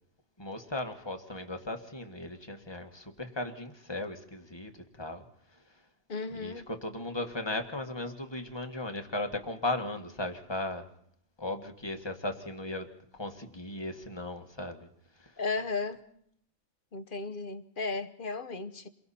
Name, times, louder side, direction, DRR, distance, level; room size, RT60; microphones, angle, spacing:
voice 1, 0.4-5.2 5.5-5.8 6.3-10.9 11.4-15.4, left 2 dB, 20° left, 1.7 m, -37 dB
voice 2, 6.1-6.7 15.4-16.0 16.9-18.9, left 3 dB, 40° left, 1.1 m, -35 dB
29.5 x 23.0 x 4.3 m
omnidirectional pair, 1.4 m